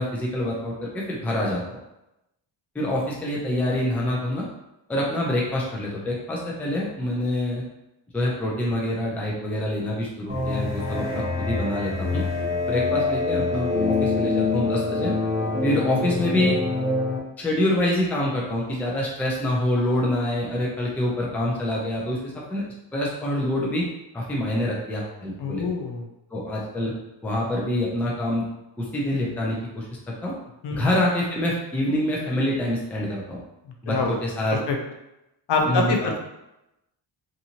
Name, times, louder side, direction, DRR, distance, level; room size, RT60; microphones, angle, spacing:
voice 1, 0.0-1.8 2.7-4.4 4.9-7.6 8.1-12.2 12.7-15.1 15.6-16.6 17.4-22.6 22.9-23.9 24.1-25.6 26.3-26.9 27.2-28.4 28.8-30.3 30.8-33.4 33.8-34.6 35.7-36.1, left 1 dB, 5° left, -4 dB, 0.4 m, -26 dB
sound 1, 10.3-17.2, left 3 dB, 15° right, 1.0 m, -25 dB
voice 2, 25.4-26.0 30.6-30.9 33.9-34.2 34.5-34.8 35.5-36.2, left 3 dB, 65° left, 2 dB, 0.6 m, -25 dB
2.6 x 2.6 x 2.8 m, 0.90 s
wide cardioid pair, 155°, 45 cm